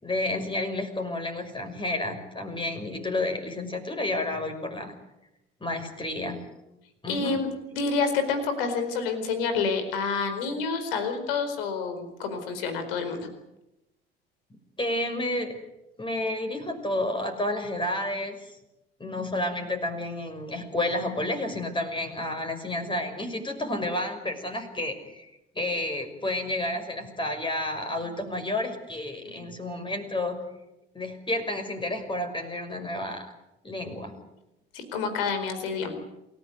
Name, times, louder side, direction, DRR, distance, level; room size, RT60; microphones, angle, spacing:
voice 1, 0.0-4.9 5.6-6.4 7.0-7.4 14.8-15.5 16.0-18.6 19.0-30.4 30.9-33.3 33.6-34.2, left 1 dB, 15° left, 6 dB, 6.0 m, -31 dB
voice 2, 7.1-13.3 34.7-35.9, left 4 dB, 65° left, 9 dB, 4.5 m, -28 dB
28.0 x 16.0 x 9.5 m, 0.92 s
figure-of-eight pair, 60°, 30 cm